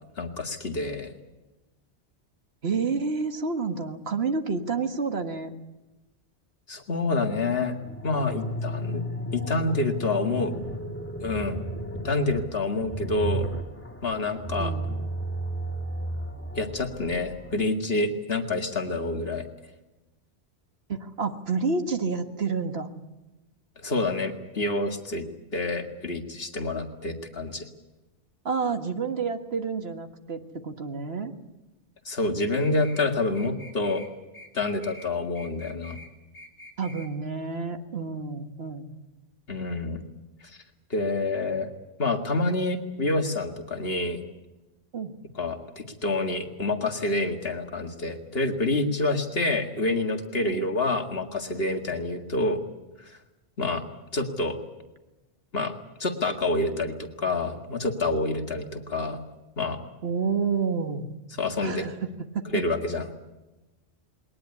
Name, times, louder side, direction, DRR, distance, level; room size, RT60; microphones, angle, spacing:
voice 1, 0.2-1.1 6.7-7.8 8.0-9.0 9.3-10.5 11.2-11.7 12.0-13.5 14.0-14.7 16.6-19.4 23.8-25.3 25.5-27.7 32.1-34.0 34.5-36.0 39.5-40.0 40.9-41.7 42.0-44.2 45.4-52.6 53.1-53.2 53.6-53.8 54.1-54.6 55.5-55.7 56.0-59.2 59.6-59.8 61.4-61.9 62.5-63.1, left 2 dB, 60° left, 4 dB, 2.2 m, -27 dB
voice 2, 2.6-5.5 14.6-14.9 20.9-22.9 28.5-31.3 36.8-38.9 44.9-45.1 50.4-50.7 60.0-61.1 61.6-62.0 62.3-62.6, right 5 dB, 65° right, 7 dB, 1.8 m, -29 dB
sound 1, 7.7-17.7, right 1 dB, 10° left, 1.6 m, -34 dB
sound 2, 32.4-33.1 33.3-34.1 34.3-35.1 35.4-36.1 36.3-37.1, left 1 dB, 35° left, 4.2 m, -46 dB
21.0 x 19.0 x 9.7 m, 1.0 s
omnidirectional pair, 1.1 m